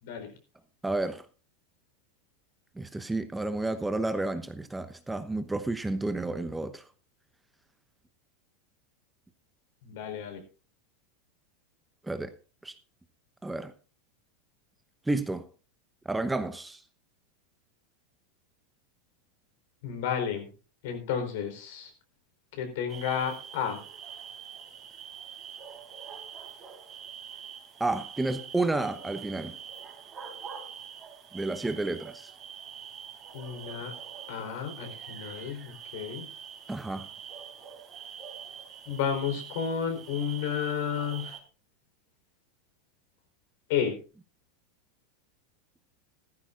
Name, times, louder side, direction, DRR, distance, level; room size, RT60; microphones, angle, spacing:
voice 1, 0.8-1.2 2.8-6.9 12.0-12.3 12.6-12.7 13.4-13.7 15.1-15.5 16.0-16.8 27.8-29.5 31.3-32.3 36.7-37.1, right 2 dB, 10° right, 1.0 m, -31 dB
voice 2, 9.8-10.4 19.8-20.5 20.8-21.9 22.5-23.8 33.3-33.9 34.3-36.3 38.9-41.4 43.7-44.0, left 7 dB, 60° left, 4.2 m, -32 dB
sound 1, 22.9-41.4, right 8 dB, 30° right, 4.0 m, -45 dB
16.0 x 14.0 x 2.5 m
figure-of-eight pair, 90°, 0 cm